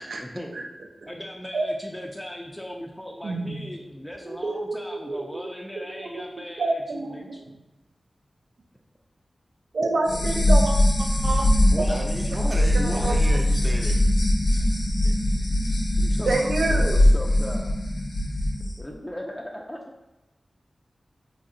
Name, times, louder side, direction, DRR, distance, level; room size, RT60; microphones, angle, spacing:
voice 1, 0.2-0.5 1.0-7.3 11.7-12.0 12.8-13.1 16.0-17.8 18.8-19.9, equal, 10° left, -1 dB, 0.4 m, -37 dB
voice 2, 3.2-3.6 4.2-5.5 5.8-6.2 6.6-7.4 9.7-11.5 11.8-12.0 13.0-13.1 16.3-17.0, right 2 dB, 85° right, 2 dB, 0.4 m, -28 dB
sound 1, 10.0-18.7, left 1 dB, 90° left, 0.7 m, -21 dB
voice 3, 11.8-14.0 14.5-14.7 15.0-15.1 15.6-15.7, right 1 dB, 35° right, 0 dB, 0.6 m, -35 dB
3.1 x 2.7 x 2.5 m, 1.0 s
cardioid pair, 50°, 0 cm